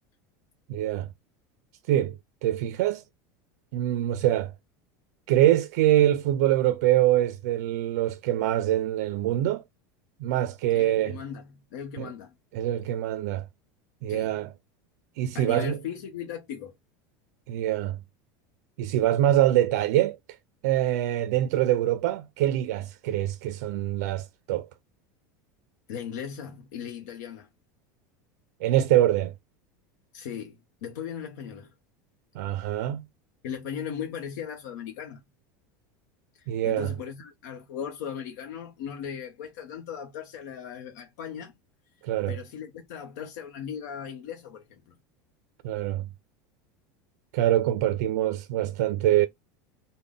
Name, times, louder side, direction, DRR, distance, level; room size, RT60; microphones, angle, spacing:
voice 1, 0.7-1.1 1.9-2.1 2.4-3.0 3.7-4.5 5.3-9.6 10.2-11.2 12.0-12.1 12.5-13.4 14.0-14.5 15.2-15.8 17.5-18.0 18.8-20.2 20.6-24.7 28.6-29.3 32.3-33.0 36.5-36.9 42.0-42.4 45.6-46.1 47.3-49.3, right 13 dB, 75° right, 0.4 m, -24 dB
voice 2, 10.7-12.3 14.1-14.4 15.3-16.7 25.9-27.5 30.1-31.7 33.4-35.2 36.4-41.5 42.3-45.0, left 8 dB, 80° left, 0.7 m, -38 dB
3.5 x 2.1 x 3.5 m
supercardioid pair, 165°, 9 cm